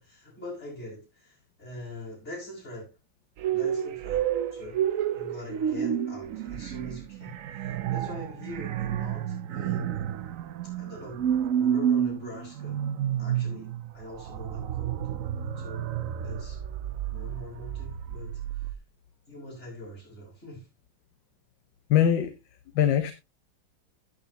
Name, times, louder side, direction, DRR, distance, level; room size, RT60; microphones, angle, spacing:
voice 1, 0.0-2.9 3.5-4.2 4.5-4.8 5.1-10.0 10.6-11.3 11.6-12.8 13.2-13.7 13.9-15.1 15.6-15.9 16.2-16.6 17.1-18.7 19.3-20.7, left 1 dB, 35° left, 6.3 m, -43 dB
sound 1, 3.4-18.7, right 9 dB, 65° right, 0.8 m, -30 dB
voice 2, 21.9-22.3 22.7-23.1, left 9 dB, 70° left, 1.5 m, -21 dB
15.0 x 8.5 x 2.9 m
omnidirectional pair, 2.2 m